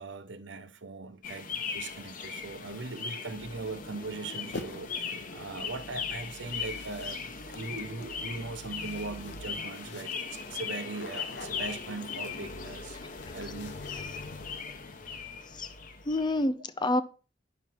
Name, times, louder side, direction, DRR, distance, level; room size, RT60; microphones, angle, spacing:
voice 1, 0.0-13.0 13.3-13.8, right 3 dB, 85° right, 0.9 m, -40 dB
sound 1, 1.2-16.4, left 5 dB, 45° left, 1.0 m, -39 dB
sound 2, 4.5-5.1 5.9-14.5, left 3 dB, 75° left, 1.0 m, -47 dB
voice 2, 16.0-17.0, left 1 dB, 25° left, 0.5 m, -29 dB
9.8 x 5.8 x 4.6 m
head